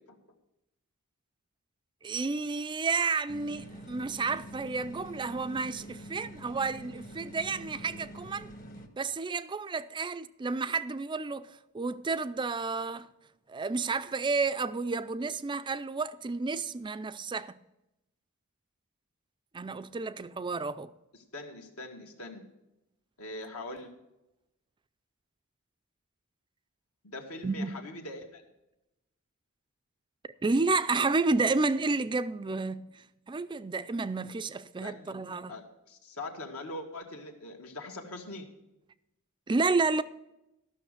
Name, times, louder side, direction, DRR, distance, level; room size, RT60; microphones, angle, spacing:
voice 1, 2.0-8.5 9.0-13.1 13.5-17.6 19.5-20.9 27.4-27.7 30.4-33.0 33.3-35.6 39.5-40.0, right 3 dB, 20° right, 0.4 m, -31 dB
sound 1, 3.3-8.9, right 1 dB, 40° left, 1.4 m, -46 dB
voice 2, 21.3-22.5 23.2-23.9 27.0-28.4 34.8-35.2 35.5-38.5, left 2 dB, 75° left, 1.9 m, -42 dB
13.5 x 6.4 x 6.6 m
head